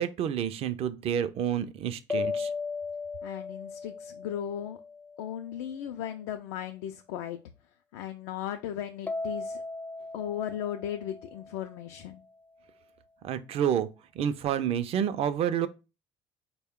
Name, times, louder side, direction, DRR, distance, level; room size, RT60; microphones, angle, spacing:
voice 1, 0.0-2.5 13.2-13.9 14.1-15.7, right 9 dB, 55° right, 0.5 m, -29 dB
sound 1, 2.1-5.6 9.1-12.1, left 4 dB, 15° left, 0.4 m, -37 dB
voice 2, 3.2-4.8 5.2-7.4 7.9-9.6 10.1-12.2, left 10 dB, 85° left, 0.4 m, -36 dB
4.1 x 2.2 x 3.6 m
supercardioid pair, 95°, 12 cm